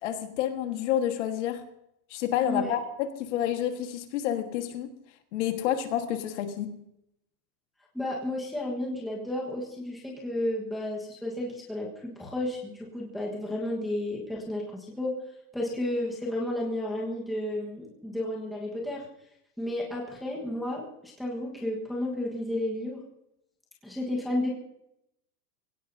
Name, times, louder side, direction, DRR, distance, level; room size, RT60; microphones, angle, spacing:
voice 1, 0.0-1.6 2.1-4.9 5.3-6.8, left 10 dB, 45° left, 6 dB, 1.6 m, -29 dB
voice 2, 2.4-2.8 7.9-15.2 15.5-19.1 19.6-23.0 23.8-24.5, left 1 dB, ahead, -4 dB, 1.3 m, -32 dB
24.5 x 17.0 x 2.7 m, 0.80 s
supercardioid pair, 175°, 49 cm